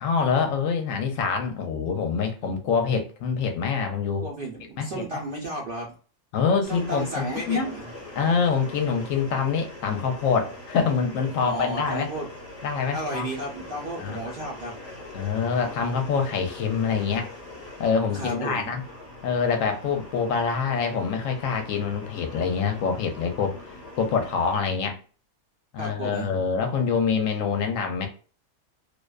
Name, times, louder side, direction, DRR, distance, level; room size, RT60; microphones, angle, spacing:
voice 1, 0.0-4.2 4.8-5.0 6.3-7.7 8.1-12.1 12.6-13.3 14.0-14.3 15.1-17.3 17.8-18.8 19.2-23.6 24.0-25.0 25.7-28.1, left 6 dB, 70° left, 0.9 m, -25 dB
voice 2, 4.2-5.9 6.7-7.9 11.4-12.3 12.9-14.8 18.1-18.7 25.8-26.3, right 1 dB, 55° right, 0.6 m, -33 dB
sound 1, 6.6-24.6, left 2 dB, 30° left, 1.0 m, -42 dB
2.5 x 2.2 x 2.2 m
omnidirectional pair, 1.5 m